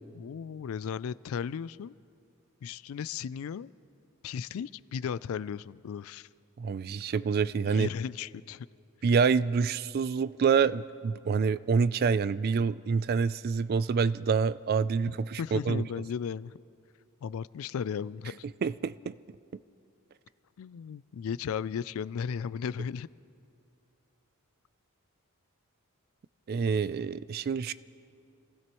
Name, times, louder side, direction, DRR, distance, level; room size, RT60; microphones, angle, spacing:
voice 1, 0.2-1.9 2.6-3.7 4.2-6.3 7.6-8.7 15.4-16.5 17.2-18.5 20.6-23.1, left 7 dB, 65° left, 19 dB, 0.3 m, -35 dB
voice 2, 6.6-7.9 9.0-15.8 18.6-19.1 26.5-27.7, right 5 dB, 45° right, 16 dB, 0.3 m, -27 dB
27.0 x 16.0 x 3.0 m, 2.5 s
head